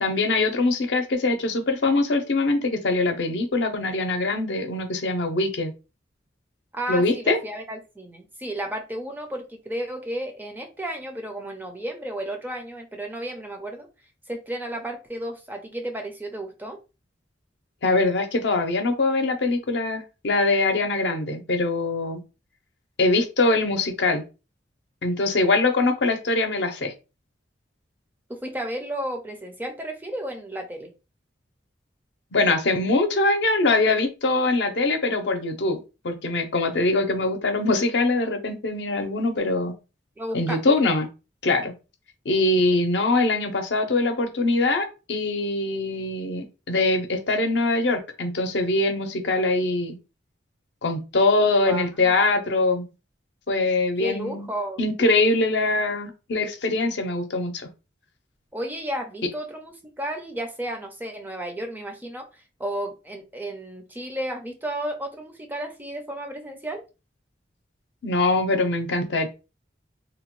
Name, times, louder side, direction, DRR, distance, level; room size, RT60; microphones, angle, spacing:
voice 1, 0.0-5.7 6.9-7.4 17.8-22.2 23.0-24.2 25.0-26.9 32.3-35.8 36.0-39.7 40.3-41.1 41.4-41.7 42.3-50.0 50.8-52.9 53.5-54.5 54.8-57.7 68.0-69.3, left 2 dB, 65° left, 6 dB, 0.6 m, -23 dB
voice 2, 6.7-13.9 14.3-16.8 28.3-30.9 40.2-40.6 51.6-52.1 54.0-54.8 58.5-62.3 62.6-66.8, right 1 dB, 10° right, 4 dB, 0.4 m, -33 dB
2.8 x 2.1 x 3.0 m, 0.30 s
head